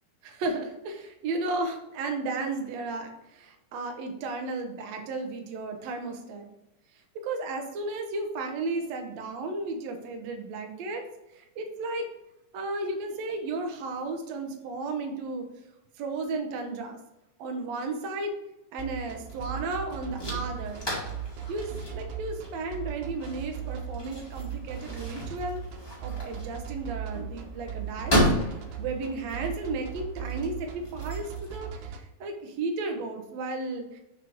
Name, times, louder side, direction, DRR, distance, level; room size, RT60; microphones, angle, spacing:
voice 1, 0.2-6.5 7.1-11.0 11.3-12.1 12.5-15.4 16.0-17.0 17.4-18.3 18.7-20.9 21.5-25.6 26.0-34.0, right 3 dB, 70° right, 4 dB, 1.7 m, -34 dB
sound 1, 18.8-32.0, right 9 dB, 85° right, 2.7 m, -38 dB
sound 2, 19.2-31.6, equal, 25° left, 0.5 m, -34 dB
6.5 x 5.7 x 3.6 m, 0.91 s
omnidirectional pair, 4.2 m